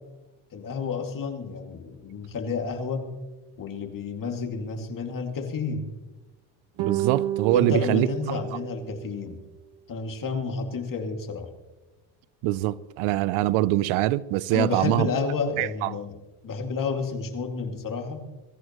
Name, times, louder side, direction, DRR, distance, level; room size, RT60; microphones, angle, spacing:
voice 1, 0.5-3.1 3.6-6.0 7.5-9.4 9.9-11.5 14.5-16.2 16.4-18.3, left 4 dB, 40° left, 2.4 m, -30 dB
sound 1, 6.8-9.3, right 12 dB, 60° right, 1.5 m, -30 dB
voice 2, 6.8-8.1 12.4-15.1 15.6-15.9, right 16 dB, 85° right, 0.7 m, -23 dB
22.5 x 14.5 x 3.1 m
cardioid pair, 115°, 48 cm